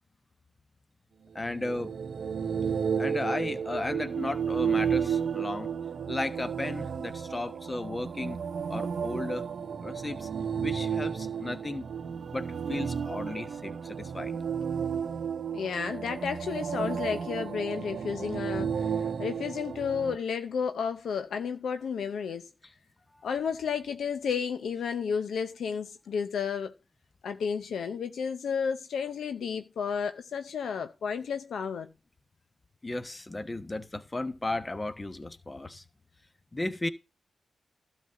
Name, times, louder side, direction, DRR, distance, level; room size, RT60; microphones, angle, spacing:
voice 1, 1.3-1.9 3.0-5.7 6.1-8.4 8.7-9.5 9.8-10.3 10.6-11.9 12.3-14.4 32.8-35.8 36.5-36.9, left 2 dB, 30° left, 1.2 m, -34 dB
sound 1, 1.4-20.2, right 7 dB, 70° right, 0.7 m, -32 dB
voice 2, 15.5-22.5 23.2-26.7 27.2-31.9, left 6 dB, 80° left, 0.7 m, -32 dB
12.0 x 4.1 x 7.6 m
supercardioid pair, 45°, 0 cm